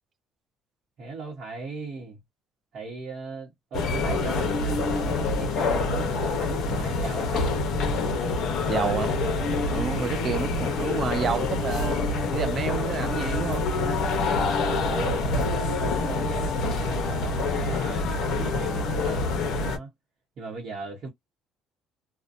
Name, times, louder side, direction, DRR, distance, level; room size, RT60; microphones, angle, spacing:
voice 1, 1.0-2.2 2.7-7.6 9.8-10.3 14.7-19.9 20.4-21.1, right 4 dB, 50° right, 0.9 m, -38 dB
sound 1, 3.7-19.8, left 3 dB, 55° left, 0.8 m, -26 dB
voice 2, 8.7-9.1 9.7-13.6, right 6 dB, 35° right, 0.3 m, -29 dB
2.6 x 2.2 x 2.5 m
cardioid pair, 150°, 0 cm